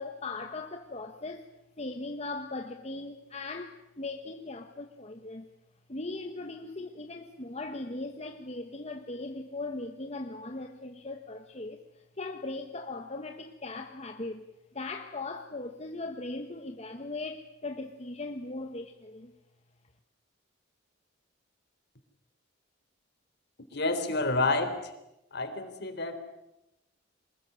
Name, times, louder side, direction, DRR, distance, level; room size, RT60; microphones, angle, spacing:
voice 1, 0.0-1.5 1.8-5.5 5.9-14.5 14.7-19.3, left 2 dB, 35° left, 5 dB, 1.5 m, -39 dB
voice 2, 23.7-24.9 25.3-26.2, left 2 dB, 60° left, 9 dB, 3.9 m, -29 dB
25.5 x 21.0 x 9.7 m, 0.89 s
head